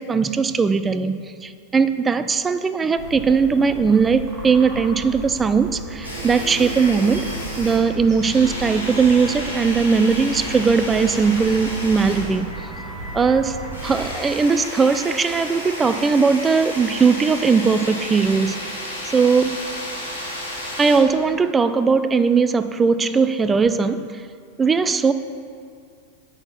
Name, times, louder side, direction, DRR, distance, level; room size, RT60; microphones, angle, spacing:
voice 1, 0.0-12.6 13.1-18.6 19.1-19.6 20.8-24.2 24.6-25.1, right 5 dB, 15° right, 12 dB, 0.4 m, -19 dB
sound 1, 3.0-14.1, right 1 dB, 35° right, 1.8 m, -35 dB
sound 2, 6.0-21.0, equal, 85° right, 2.5 m, -32 dB
8.9 x 6.1 x 5.8 m, 2.2 s
figure-of-eight pair, 90°, 0 cm